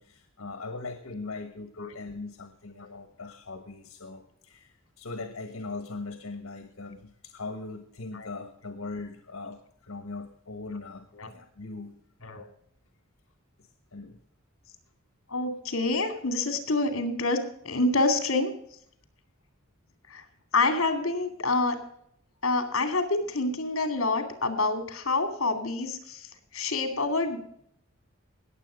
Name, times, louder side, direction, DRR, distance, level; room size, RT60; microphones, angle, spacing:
voice 1, 0.0-11.9 13.6-14.2, left 3 dB, 90° left, 7 dB, 1.3 m, -40 dB
voice 2, 15.3-18.5 20.1-20.2 20.5-21.8 22.4-27.4, left 2 dB, 70° left, 7 dB, 2.5 m, -27 dB
19.0 x 7.6 x 5.0 m, 0.69 s
head